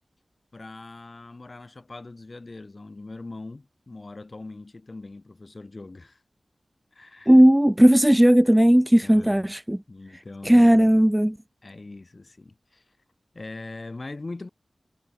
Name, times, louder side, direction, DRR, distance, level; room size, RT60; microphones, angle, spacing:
voice 1, 0.5-6.2 6.9-7.3 9.0-9.5 9.9-11.1 11.6-12.8 13.3-14.5, left 2 dB, 50° left, 7.2 m, -41 dB
voice 2, 7.3-9.8 10.4-11.3, equal, 10° right, 0.3 m, -16 dB
cardioid pair, 45°, 0 cm